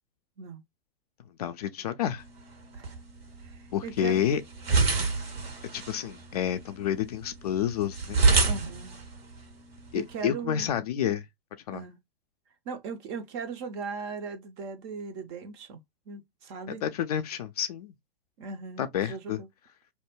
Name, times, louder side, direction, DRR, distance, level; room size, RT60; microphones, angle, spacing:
voice 1, 1.4-2.2 3.7-4.4 5.7-8.2 9.9-11.2 11.7-11.8 16.7-17.9 18.8-19.4, left 10 dB, 45° left, 0.4 m, -29 dB
sound 1, 2.2-10.2, right 4 dB, 80° right, 1.2 m, -29 dB
voice 2, 3.4-4.2 8.5-9.0 9.9-10.7 11.7-12.0 12.7-15.8 16.1-16.8 18.4-19.5, right 5 dB, 25° right, 0.5 m, -38 dB
2.6 x 2.1 x 3.4 m
figure-of-eight pair, 110°, 29 cm